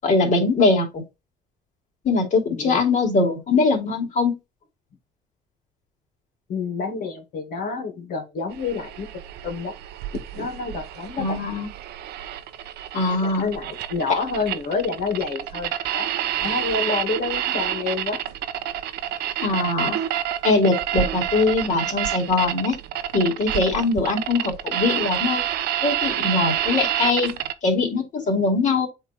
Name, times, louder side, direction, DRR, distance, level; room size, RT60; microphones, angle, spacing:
voice 1, 0.0-1.0 2.0-4.4 11.2-11.7 12.9-13.5 19.4-20.0 20.4-22.8 23.1-25.4 25.8-28.9, left 3 dB, 45° left, 2.8 m, -22 dB
voice 2, 2.5-2.9 6.5-9.7 10.3-11.4 13.2-16.1 16.4-18.2, left 4 dB, 65° left, 2.2 m, -28 dB
sound 1, 8.5-27.5, right 11 dB, 75° right, 0.7 m, -28 dB
7.8 x 3.2 x 4.3 m
cardioid pair, 110°, 17 cm